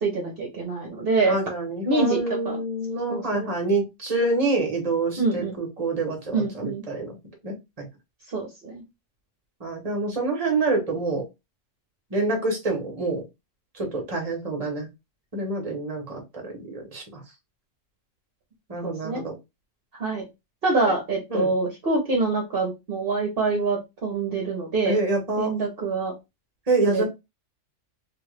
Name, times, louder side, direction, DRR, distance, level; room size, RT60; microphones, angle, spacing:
voice 1, 0.0-1.4 1.8-2.6 3.1-3.5 5.2-5.5 6.3-6.8 8.3-8.8 18.8-19.2 20.0-20.2 20.6-25.0 25.4-26.1 26.8-27.0, right 3 dB, 55° right, -1 dB, 1.0 m, -25 dB
voice 2, 1.2-7.1 7.4-7.9 9.6-11.3 12.1-13.2 13.7-14.9 15.3-17.2 18.7-19.3 20.9-21.0 21.3-21.5 24.8-25.5 26.7-27.0, right 3 dB, 30° right, 2 dB, 1.1 m, -27 dB
3.0 x 2.6 x 3.2 m, 0.23 s
omnidirectional pair, 1.3 m